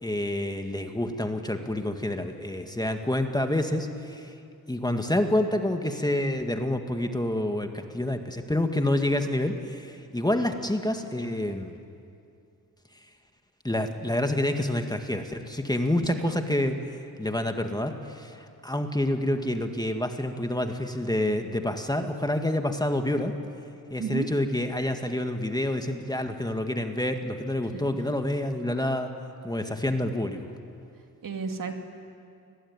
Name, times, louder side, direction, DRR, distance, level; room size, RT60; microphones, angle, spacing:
voice 1, 0.0-4.3 4.7-11.7 13.6-23.3 23.9-29.1 29.4-30.5, left 1 dB, 10° left, 5 dB, 1.9 m, -28 dB
voice 2, 24.0-24.3 27.7-27.9 29.9-30.0 31.2-31.7, right 5 dB, 60° right, 4 dB, 2.7 m, -33 dB
28.0 x 20.0 x 9.7 m, 2.5 s
cardioid pair, 90°, 37 cm